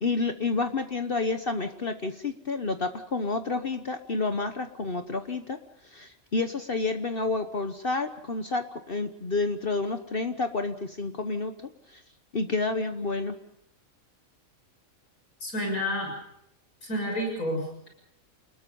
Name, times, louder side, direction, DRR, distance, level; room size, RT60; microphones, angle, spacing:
voice 1, 0.0-5.6 5.9-11.5 12.3-13.3, left 3 dB, 45° left, 7 dB, 1.2 m, -29 dB
voice 2, 15.4-16.1 16.8-17.9, equal, 90° left, 2 dB, 7.1 m, -30 dB
29.5 x 20.5 x 5.4 m, 0.74 s
omnidirectional pair, 1.5 m